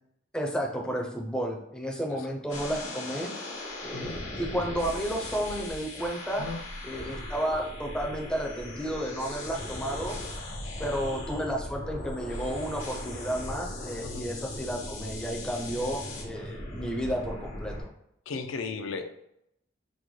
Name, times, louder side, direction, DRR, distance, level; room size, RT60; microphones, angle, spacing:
voice 1, 0.3-3.6 3.8-6.5 6.8-10.2 10.8-17.7, equal, 5° left, 0 dB, 0.5 m, -32 dB
sound 1, 2.5-17.8, left 1 dB, 90° left, 1.0 m, -38 dB
voice 2, 18.3-19.2, left 4 dB, 70° left, 6 dB, 0.4 m, -35 dB
3.7 x 2.1 x 3.1 m, 0.78 s
head